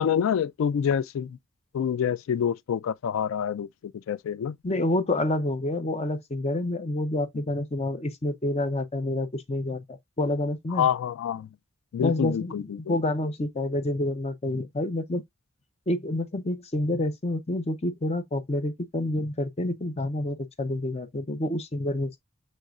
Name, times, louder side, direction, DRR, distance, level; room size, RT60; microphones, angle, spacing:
voice 1, 0.0-1.4 1.7-4.6 10.7-11.5 11.9-13.0, left 8 dB, 90° left, 0.3 m, -27 dB
voice 2, 4.6-10.9 12.0-15.2 15.9-22.2, left 1 dB, 30° left, 0.6 m, -28 dB
6.4 x 3.2 x 2.3 m
head